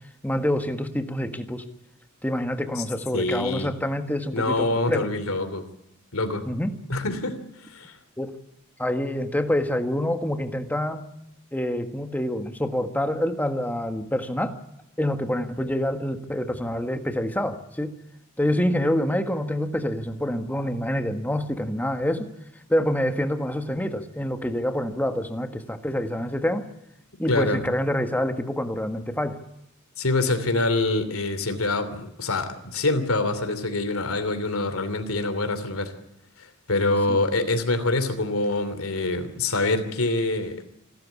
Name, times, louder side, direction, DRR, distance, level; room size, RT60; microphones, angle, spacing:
voice 1, 0.2-1.6 2.2-5.1 6.5-6.7 8.2-8.3 8.8-11.0 11.5-14.6 15.0-17.9 18.4-22.3 22.7-26.6 27.2-29.4 37.1-37.2, left 1 dB, 10° left, 7 dB, 1.6 m, -26 dB
voice 2, 3.1-3.7 4.3-5.7 6.1-6.4 6.9-7.4 7.7-7.9 27.3-27.6 30.0-35.9 36.7-40.6, left 2 dB, 80° left, 10 dB, 3.0 m, -25 dB
27.0 x 13.0 x 8.3 m, 0.87 s
head